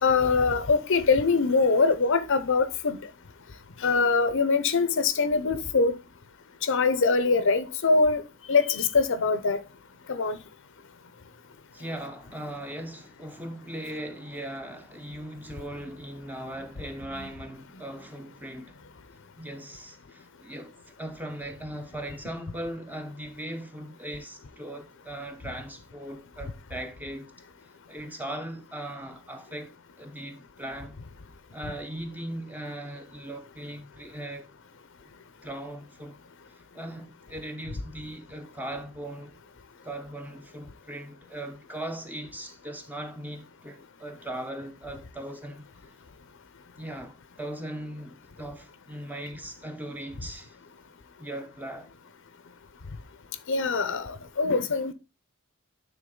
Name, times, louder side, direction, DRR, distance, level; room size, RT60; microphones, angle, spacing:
voice 1, 0.0-3.0 3.8-5.9 6.6-8.2 8.5-9.6 10.1-10.4 53.5-54.9, left 4 dB, 60° left, 0.7 m, -23 dB
voice 2, 11.7-18.7 19.4-27.3 27.9-31.0 31.5-34.5 35.0-35.1 35.4-36.2 36.5-39.4 39.8-45.7 46.8-50.6 51.2-51.9, right 1 dB, 10° right, 0.8 m, -39 dB
9.3 x 3.7 x 3.8 m
head